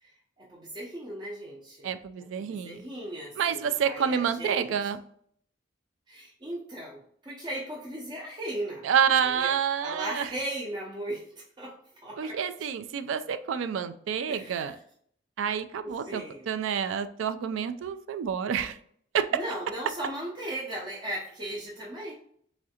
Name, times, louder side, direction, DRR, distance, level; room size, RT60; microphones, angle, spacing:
voice 1, 0.0-1.9 2.2-4.7 6.1-8.9 9.2-12.4 14.3-14.8 15.8-16.5 19.3-22.1, right 1 dB, 25° right, -4 dB, 0.5 m, -37 dB
voice 2, 1.8-2.8 3.4-5.0 8.8-10.3 12.2-14.8 15.4-18.8 19.1-19.3, right 7 dB, 90° right, 10 dB, 0.3 m, -28 dB
3.6 x 3.2 x 2.8 m, 0.64 s
head